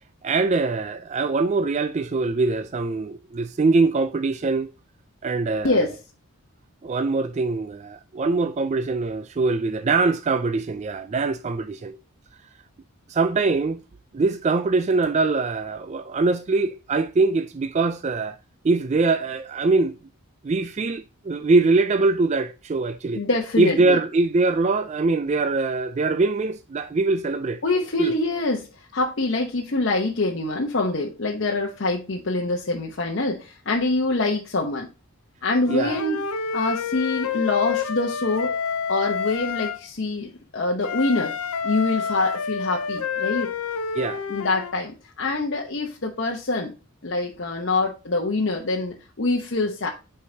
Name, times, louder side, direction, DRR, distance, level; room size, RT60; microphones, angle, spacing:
voice 1, 0.2-4.7 5.2-5.9 6.8-12.0 13.1-13.8 14.1-18.4 18.6-20.0 20.4-23.2 23.6-27.6 28.0-28.1 35.7-36.0 44.0-44.3, right 3 dB, 30° right, 0.3 m, -23 dB
voice 2, 23.1-24.0 27.6-28.7 28.9-34.9 35.4-36.2 36.5-38.5 38.9-41.3 41.6-43.5 44.3-44.9 45.2-46.7 47.0-49.9, left 2 dB, 55° left, 0.9 m, -25 dB
Wind instrument woodwind instrument, 35.7-39.8 40.8-44.7, left 6 dB, 85° left, 0.7 m, -28 dB
8.4 x 4.6 x 2.7 m
head